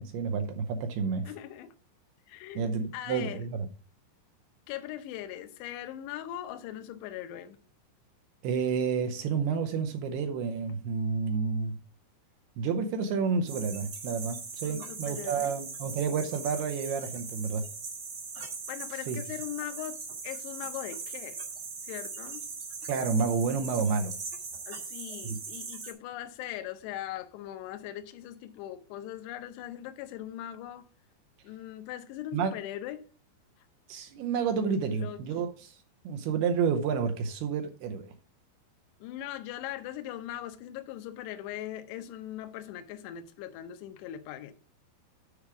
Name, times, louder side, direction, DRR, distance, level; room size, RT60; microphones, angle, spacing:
voice 1, 0.0-1.3 2.6-3.7 8.4-11.8 12.6-17.7 19.1-19.2 22.9-24.1 25.2-25.4 32.3-32.6 33.9-38.1, right 5 dB, 80° right, 2.5 m, -30 dB
voice 2, 1.2-1.7 2.3-3.4 4.7-7.6 14.6-15.5 18.7-20.0 20.2-21.4 21.8-22.5 24.7-30.9 31.4-33.0 34.9-35.2 39.0-44.5, left 12 dB, 80° left, 2.9 m, -40 dB
sound 1, 13.5-25.9, right 5 dB, 55° right, 1.4 m, -40 dB
9.9 x 5.0 x 4.7 m
omnidirectional pair, 5.1 m